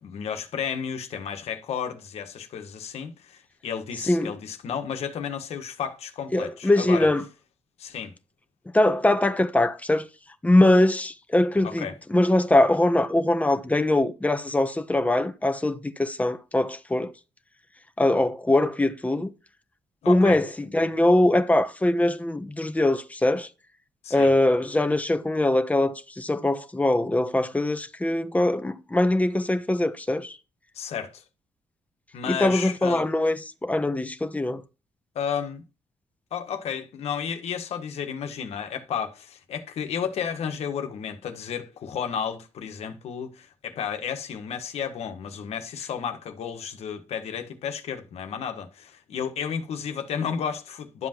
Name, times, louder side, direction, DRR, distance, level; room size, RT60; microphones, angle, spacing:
voice 1, 0.0-7.1 7.8-8.1 11.6-12.0 20.0-20.4 24.0-24.3 30.7-31.2 32.1-33.1 35.1-35.6 36.3-51.1, left 7 dB, 70° left, 1.5 m, -32 dB
voice 2, 6.3-7.2 8.7-10.1 10.4-17.1 18.0-19.3 20.1-20.5 20.7-23.5 24.1-30.4 32.3-33.3 33.6-34.6, left 1 dB, 15° left, 1.2 m, -22 dB
12.0 x 7.5 x 3.0 m
hypercardioid pair, 45°, 11 cm